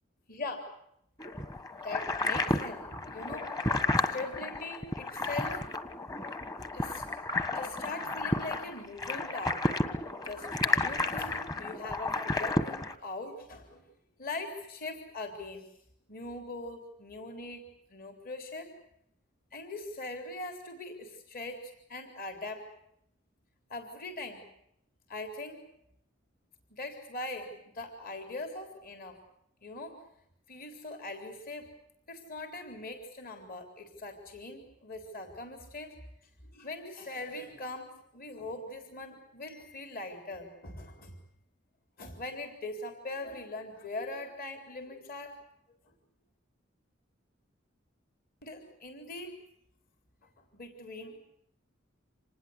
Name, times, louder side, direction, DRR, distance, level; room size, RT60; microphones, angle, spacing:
sound 1, 1.2-13.0, left 2 dB, 20° left, 1.4 m, -32 dB
voice 1, 1.8-5.6 5.9-6.0 6.7-7.0 7.5-9.8 10.2-13.8 14.2-15.6 16.1-17.6 17.9-18.7 19.5-22.7 23.7-24.4 25.1-25.6 26.7-29.2 29.6-30.0 30.5-31.7 32.1-35.9 36.5-41.1 42.0-45.4 48.4-49.4 50.2-51.2, left 2 dB, 50° left, 6 dB, 4.0 m, -41 dB
26.5 x 20.0 x 8.1 m, 0.75 s
head